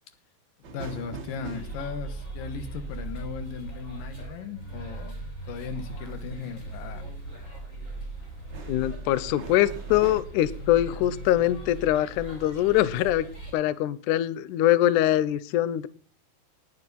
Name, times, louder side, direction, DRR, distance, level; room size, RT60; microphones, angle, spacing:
voice 1, 0.6-5.2 5.5-7.1, left 6 dB, 70° left, 9 dB, 2.9 m, -37 dB
sound 1, 0.6-4.5 7.0-7.5 7.9-10.2, right 4 dB, 60° right, 1.2 m, -43 dB
sound 2, 1.5-13.5, right 2 dB, 20° left, 4.0 m, -39 dB
voice 2, 8.7-13.3 13.5-15.9, left 13 dB, 85° left, 16 dB, 1.7 m, -23 dB
19.5 x 7.3 x 4.1 m, 0.38 s
omnidirectional pair, 4.4 m